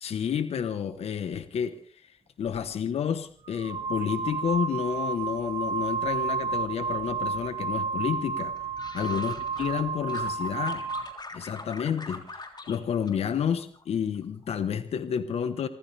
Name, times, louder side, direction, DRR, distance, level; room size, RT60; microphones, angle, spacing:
voice 1, 0.0-8.5 8.9-10.9 11.3-12.2 12.7-15.7, left 8 dB, 85° left, 10 dB, 1.2 m, -30 dB
sound 1, 2.5-2.6 3.4-11.2, right 5 dB, 75° right, 1.8 m, -31 dB
sound 2, 8.3-9.8 10.1-12.8 13.1-13.8 14.1-14.6, left 3 dB, 45° left, 3.6 m, -43 dB
28.0 x 14.5 x 3.4 m, 0.43 s
cardioid pair, 45°, 10 cm